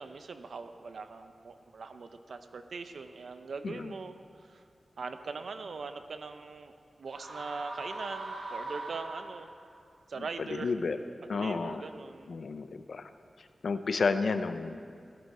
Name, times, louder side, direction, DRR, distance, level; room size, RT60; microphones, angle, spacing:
voice 1, 0.0-4.6 5.0-9.5 10.1-10.7 11.2-12.3, right 4 dB, 80° right, 8 dB, 0.7 m, -41 dB
sound 1, 7.1-9.7, right 2 dB, 60° right, 1.9 m, -40 dB
voice 2, 10.2-11.0 11.3-11.8 12.3-13.1 13.4-14.8, left 4 dB, 70° left, 10 dB, 0.6 m, -32 dB
16.0 x 11.0 x 4.3 m, 2.2 s
wide cardioid pair, 120°, 0 cm